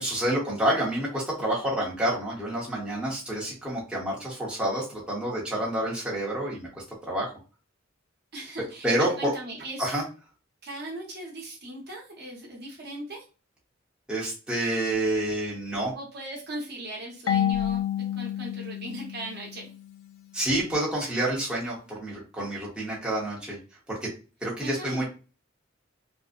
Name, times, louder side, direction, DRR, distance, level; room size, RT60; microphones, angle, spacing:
voice 1, 0.0-7.3 8.8-9.3 9.8-10.0 14.1-15.9 20.3-23.6 23.9-24.1 24.4-25.1, right 1 dB, 5° right, -6 dB, 0.8 m, -28 dB
voice 2, 8.3-10.0 10.6-13.2 15.9-17.8 18.1-19.7 24.6-25.1, right 1 dB, 50° right, -2 dB, 0.8 m, -38 dB
Marimba xylophone / Wood, 17.3-20.0, left 10 dB, 75° left, 0.4 m, -29 dB
2.5 x 2.0 x 2.4 m, 0.34 s
head